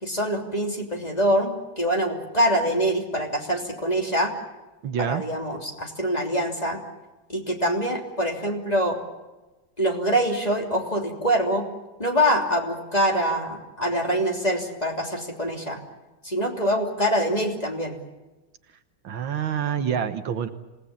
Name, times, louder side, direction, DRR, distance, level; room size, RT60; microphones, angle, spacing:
voice 1, 0.0-4.3 5.0-6.8 7.3-9.0 9.8-11.6 12.0-15.8 16.2-17.9, equal, 20° left, 2 dB, 3.2 m, -24 dB
voice 2, 4.8-5.2 19.0-20.5, right 8 dB, 75° right, 9 dB, 2.0 m, -27 dB
27.0 x 18.5 x 8.6 m, 1.1 s
omnidirectional pair, 2.2 m